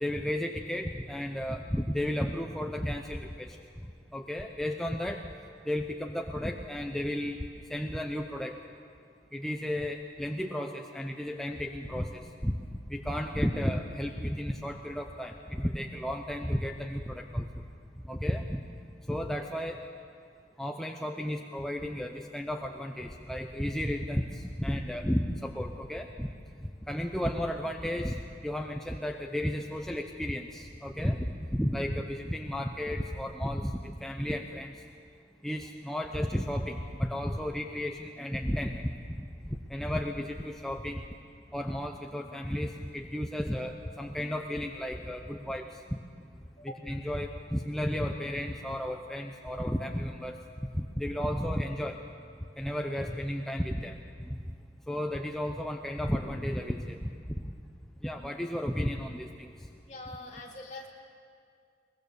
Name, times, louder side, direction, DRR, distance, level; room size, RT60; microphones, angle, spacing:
voice 1, 0.0-3.6 4.1-5.2 5.7-7.4 7.7-8.6 9.3-12.5 12.9-17.6 18.0-18.6 19.1-19.8 20.6-26.3 26.6-34.8 35.4-41.0 41.5-46.0 46.6-50.4 50.7-52.0 52.6-54.0 54.3-54.5 54.9-57.4 58.0-59.5, equal, 5° left, 2 dB, 0.7 m, -33 dB
voice 2, 59.9-60.9, left 2 dB, 40° left, -1 dB, 2.8 m, -43 dB
22.5 x 20.5 x 6.9 m, 2.3 s
head